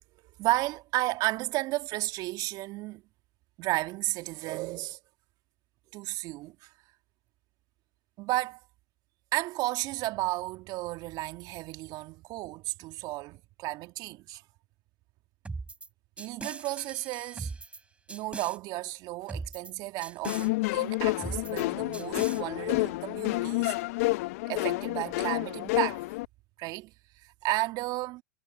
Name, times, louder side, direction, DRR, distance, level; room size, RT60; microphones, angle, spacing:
voice 1, 0.4-3.0 3.6-5.0 5.9-6.7 8.2-8.6 9.3-14.4 16.2-17.5 18.1-23.7 24.5-26.0 26.6-26.9 27.2-28.2, right 19 dB, 50° right, 2.2 m, -33 dB
sound 1, 15.4-15.9 16.2-17.8 18.1-18.6 19.3-19.7 20.0-20.5 21.2-21.6 21.9-22.4, right 3 dB, 15° right, 6.0 m, -39 dB
sound 2, 20.2-26.2, left 23 dB, 65° left, 0.8 m, -29 dB
hypercardioid pair, 95°, 9 cm